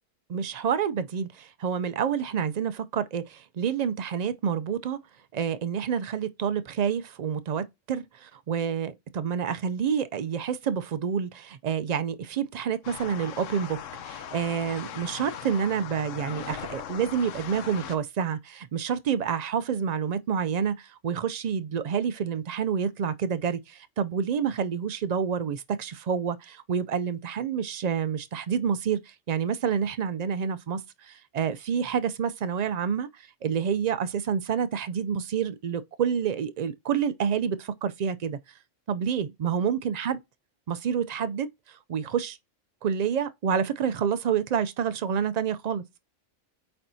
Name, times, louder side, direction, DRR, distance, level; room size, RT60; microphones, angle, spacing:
voice 1, 0.3-5.0 5.3-13.8 14.0-33.1 33.4-38.4 38.9-40.2 40.7-42.4 42.8-45.8, right 7 dB, 80° right, 0.3 m, -28 dB
sound 1, 12.8-18.0, left 9 dB, 90° left, 1.1 m, -39 dB
8.5 x 4.4 x 2.7 m
omnidirectional pair, 1.3 m